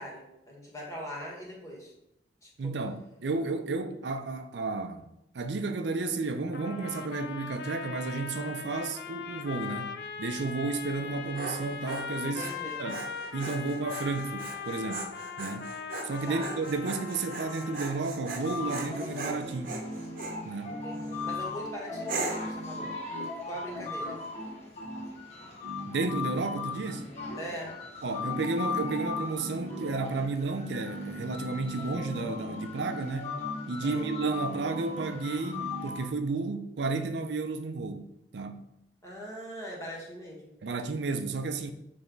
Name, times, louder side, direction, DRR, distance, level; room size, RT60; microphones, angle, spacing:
voice 1, 0.0-1.9 2.4-2.7 12.2-12.8 16.3-16.5 20.7-24.2 27.3-27.7 33.8-34.1 39.0-40.6, equal, 20° left, 1.7 m, -41 dB
voice 2, 2.6-5.1 5.3-12.5 12.8-13.0 13.3-15.1 15.4-15.8 16.0-19.8 20.4-20.8 25.9-27.1 28.0-33.4 33.7-38.7 40.6-41.7, right 3 dB, 75° right, 0.5 m, -32 dB
sound 1, 6.5-18.2, left 6 dB, 65° left, 0.5 m, -40 dB
Dog, 11.0-20.4 21.0-21.4 22.1-22.6, right 3 dB, 55° right, 0.9 m, -39 dB
sound 2, 18.2-36.1, left 3 dB, 40° left, 1.1 m, -37 dB
7.1 x 3.4 x 3.9 m
head